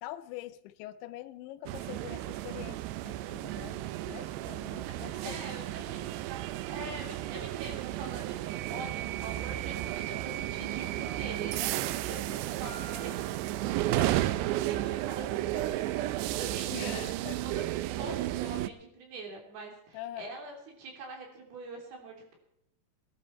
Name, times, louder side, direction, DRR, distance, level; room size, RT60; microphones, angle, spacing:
voice 1, 0.0-5.4 16.7-17.4 19.9-20.4, left 14 dB, 90° left, 12 dB, 3.0 m, -44 dB
sound 1, 1.7-18.7, right 15 dB, 80° right, 2.6 m, -33 dB
voice 2, 4.8-6.0 6.7-17.0 17.4-17.7 18.0-22.4, right 3 dB, 65° right, 1 dB, 5.0 m, -44 dB
Piano, 12.7-14.6, right 1 dB, 70° left, 4.1 m, -51 dB
20.0 x 11.0 x 4.5 m, 0.76 s
omnidirectional pair, 5.1 m